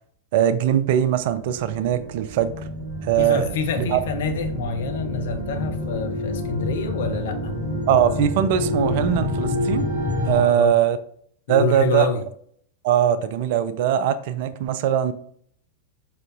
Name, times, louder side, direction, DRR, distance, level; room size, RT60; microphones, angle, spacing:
voice 1, 0.3-2.5 3.1-4.0 7.9-9.9 10.3-11.0 11.5-12.1 12.8-15.1, right 10 dB, 50° right, 0.4 m, -21 dB
sound 1, 0.9-10.4, left 1 dB, 80° left, 1.4 m, -28 dB
voice 2, 3.2-7.5 10.4-10.7 11.5-12.2, left 3 dB, 60° left, 0.6 m, -27 dB
5.0 x 4.2 x 2.5 m
figure-of-eight pair, 90°, 0 cm